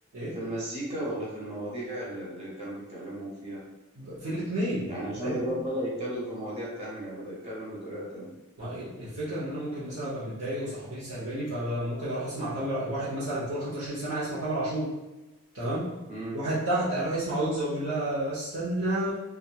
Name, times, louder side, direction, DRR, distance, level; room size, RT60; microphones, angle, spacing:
voice 1, 0.3-3.6 4.9-8.3 16.1-16.4, right 1 dB, 30° right, -6 dB, 0.9 m, -34 dB
voice 2, 4.0-5.4 8.6-14.9 15.5-15.9 16.3-19.1, right 1 dB, 90° right, -10 dB, 0.9 m, -31 dB
2.9 x 2.4 x 2.3 m, 1.1 s
head